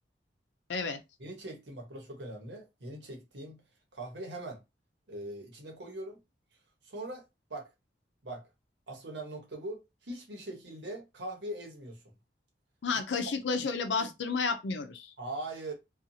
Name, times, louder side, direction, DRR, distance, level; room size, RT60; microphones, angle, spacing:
voice 1, 1.2-3.6 3.9-4.6 5.1-6.2 6.8-7.2 7.5-7.7 8.2-8.5 8.9-12.0 13.5-13.6 15.2-15.7, right 1 dB, 85° right, 1.0 m, -41 dB
voice 2, 12.8-15.1, left 4 dB, 90° left, 0.5 m, -31 dB
2.6 x 2.3 x 2.7 m
head